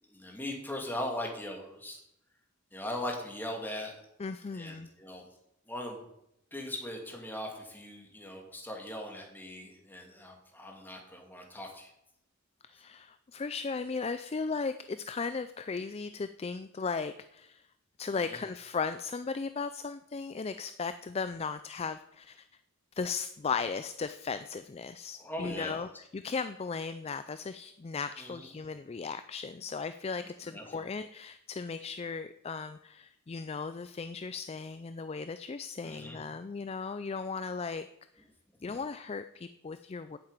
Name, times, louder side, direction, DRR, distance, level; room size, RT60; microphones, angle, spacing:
voice 1, 0.0-2.0 2.7-3.9 4.5-5.3 5.7-6.0 6.5-11.9 18.3-18.4 25.2-25.9 28.2-28.5 30.2-30.9 35.8-36.2 38.7-38.8, left 1 dB, 10° left, 1 dB, 2.4 m, -40 dB
voice 2, 4.2-4.9 12.7-17.6 18.0-22.5 23.0-37.8 38.6-40.2, left 5 dB, 30° left, 11 dB, 0.4 m, -36 dB
8.8 x 7.6 x 8.9 m, 0.80 s
head